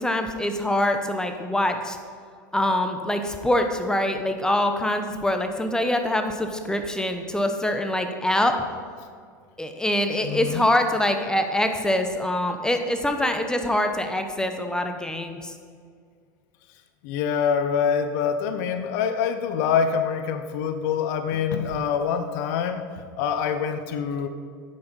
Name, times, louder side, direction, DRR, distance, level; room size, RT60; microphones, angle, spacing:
voice 1, 0.0-2.0 2.5-8.5 9.6-15.5, left 1 dB, 5° left, 6 dB, 0.9 m, -24 dB
voice 2, 10.2-10.7 17.0-22.8 23.2-24.3, left 7 dB, 65° left, 9 dB, 0.8 m, -25 dB
9.3 x 7.0 x 5.3 m, 2.1 s
hypercardioid pair, 100°, 11 cm